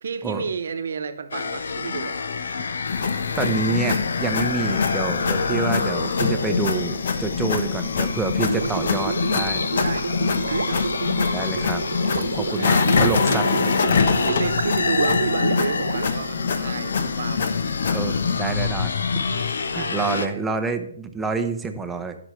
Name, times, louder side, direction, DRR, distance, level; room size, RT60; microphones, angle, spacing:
voice 1, 0.0-2.2 9.8-10.2 10.4-10.8 12.6-13.9 14.2-17.5 19.7-20.4, right 6 dB, 70° right, 10 dB, 1.0 m, -31 dB
sound 1, 1.3-20.3, left 5 dB, 80° left, 0.7 m, -28 dB
sound 2, 2.8-18.4, left 5 dB, 60° left, 1.0 m, -25 dB
voice 2, 3.4-9.6 11.3-11.8 12.1-13.4 13.9-14.0 17.9-19.2 19.7-22.2, right 4 dB, 5° right, 6 dB, 0.7 m, -28 dB
Gurgling, 8.4-16.8, right 4 dB, 90° right, 0.4 m, -29 dB
15.0 x 6.0 x 3.2 m, 0.69 s
hypercardioid pair, 155°, 0 cm